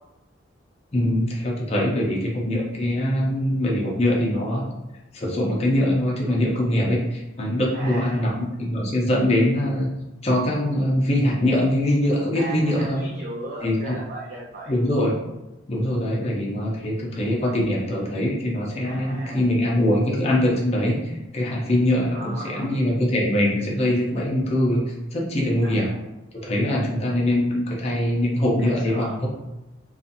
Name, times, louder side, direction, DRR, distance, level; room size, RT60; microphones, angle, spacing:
voice 1, 0.9-4.7 5.1-9.9 10.2-13.0 13.6-14.0 14.7-15.2 15.7-24.8 25.1-25.9 26.3-29.3, left 1 dB, 35° left, -4 dB, 0.5 m, -23 dB
voice 2, 7.7-8.3 12.3-14.8 18.8-19.6 22.1-22.7 25.6-26.0 28.6-29.2, right 2 dB, 50° right, -5 dB, 0.5 m, -37 dB
2.7 x 2.4 x 2.5 m, 0.97 s
head